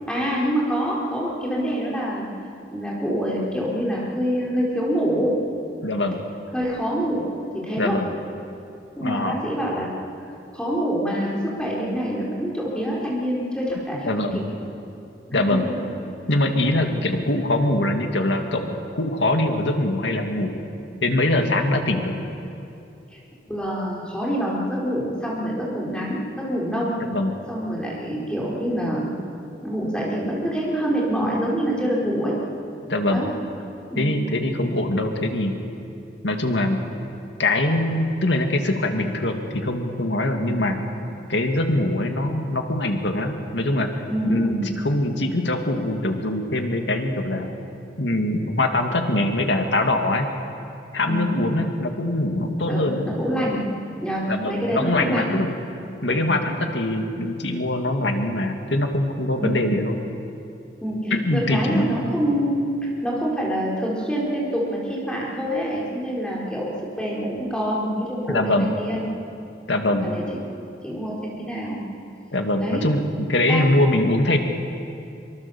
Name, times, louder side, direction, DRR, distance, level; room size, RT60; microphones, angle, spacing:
voice 1, 0.1-2.3 2.7-5.4 6.5-7.3 7.5-8.0 9.0-9.9 10.5-14.4 15.3-15.8 16.8-16.9 23.1-23.2 23.5-27.0 27.5-29.1 29.6-32.4 33.1-33.3 33.9-34.1 40.4-40.7 44.1-44.6 51.1-51.4 52.6-53.7 54.0-55.3 56.1-56.3 59.4-59.6 60.8-69.1 69.9-70.4 70.8-71.8 72.6-72.9 73.5-73.8, equal, 5° left, -5 dB, 4.1 m, -26 dB
voice 2, 5.8-6.2 7.8-8.1 9.0-9.4 14.0-14.4 15.3-15.7 16.3-20.6 21.0-22.2 27.1-27.3 32.9-33.2 34.0-35.5 36.2-36.8 37.4-40.8 41.3-43.9 44.3-44.6 44.8-47.6 48.0-50.3 50.9-53.1 54.3-55.5 56.0-60.0 61.1-61.9 68.3-68.7 69.7-70.1 72.3-74.4, left 1 dB, 85° left, 4 dB, 2.3 m, -23 dB
24.5 x 24.0 x 7.2 m, 2.7 s
head